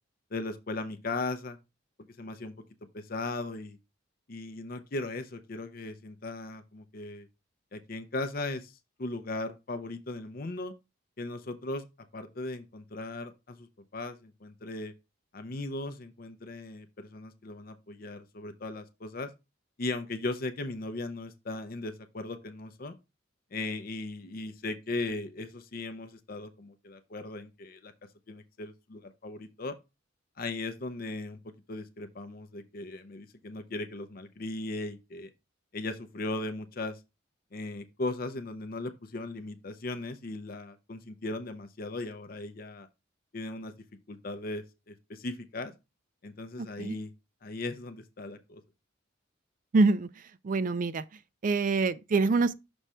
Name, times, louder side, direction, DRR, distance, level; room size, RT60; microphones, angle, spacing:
voice 1, 0.3-1.6 2.2-2.5 2.9-3.8 4.3-7.3 7.7-10.7 11.2-11.9 12.1-13.7 13.9-14.9 15.3-19.3 19.8-22.9 23.5-27.9 28.3-29.8 30.4-35.3 35.7-37.0 37.5-42.9 43.3-43.7 44.1-45.7 46.2-47.1 47.4-48.6, left 2 dB, 45° left, 0.6 m, -37 dB
voice 2, 46.6-47.0 49.7-51.0 51.4-52.5, right 3 dB, 40° right, 0.4 m, -26 dB
6.2 x 3.3 x 5.5 m
head